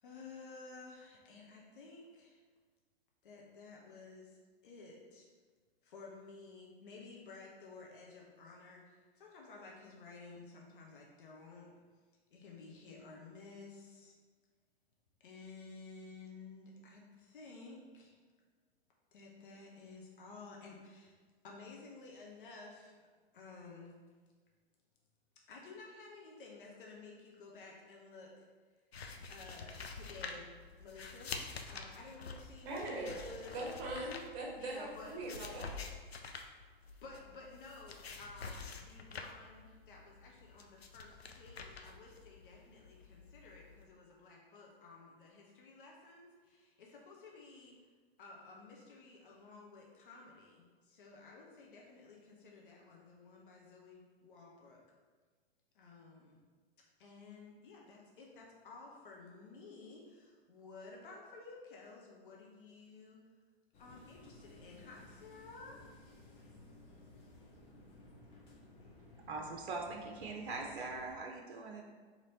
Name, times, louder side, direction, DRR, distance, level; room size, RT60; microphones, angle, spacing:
voice 1, 0.0-2.4 3.2-4.4 4.6-5.3 5.8-11.7 12.3-14.2 15.2-18.2 19.1-21.2 21.4-22.9 23.3-23.9 25.5-28.5 29.3-30.5 30.8-31.3 31.6-33.5 34.6-35.1 37.0-47.8 48.2-54.8 55.7-56.4 57.0-63.2 63.8-65.8, left 3 dB, 55° left, -2 dB, 0.9 m, -53 dB
sound 1, 28.9-43.8, left 4 dB, 75° left, 0.5 m, -48 dB
voice 2, 32.6-35.8, right 2 dB, 30° right, -2 dB, 1.1 m, -41 dB
sound 2, 63.7-71.2, left 2 dB, 20° left, 0.6 m, -57 dB
voice 3, 69.3-71.8, right 3 dB, 55° right, 1 dB, 0.6 m, -42 dB
4.2 x 3.0 x 4.0 m, 1.5 s
figure-of-eight pair, 105°, 31 cm